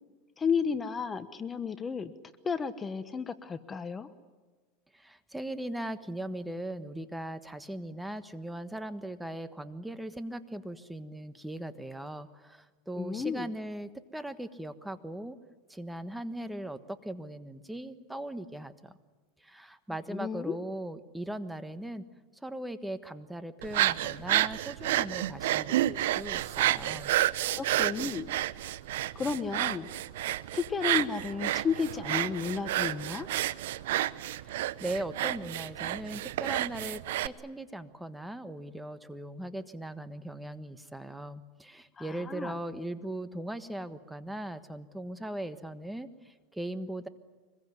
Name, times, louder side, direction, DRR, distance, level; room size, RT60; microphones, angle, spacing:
voice 1, 0.4-2.1 2.4-4.1 13.0-13.5 20.1-20.6 27.6-28.3 29.1-29.9 30.5-33.3 42.0-42.5, left 6 dB, 20° left, 12 dB, 1.1 m, -32 dB
voice 2, 4.9-15.4 15.7-18.9 19.4-22.0 22.4-27.1 34.4-47.1, right 1 dB, 5° right, 11 dB, 1.4 m, -39 dB
sound 1, 23.6-37.3, right 14 dB, 80° right, 0.9 m, -30 dB
25.0 x 21.5 x 9.7 m, 1.3 s
supercardioid pair, 130°, 0 cm